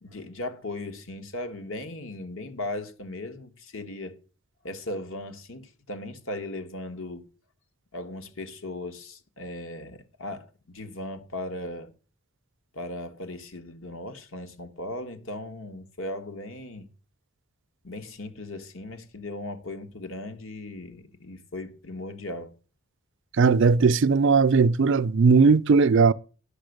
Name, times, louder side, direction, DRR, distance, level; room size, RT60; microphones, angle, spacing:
voice 1, 0.0-4.2 4.6-7.3 7.9-11.9 12.7-16.9 17.8-22.5, left 2 dB, 65° left, 1.4 m, -37 dB
voice 2, 23.4-26.1, right 4 dB, 55° right, 0.5 m, -18 dB
9.9 x 7.0 x 6.5 m
head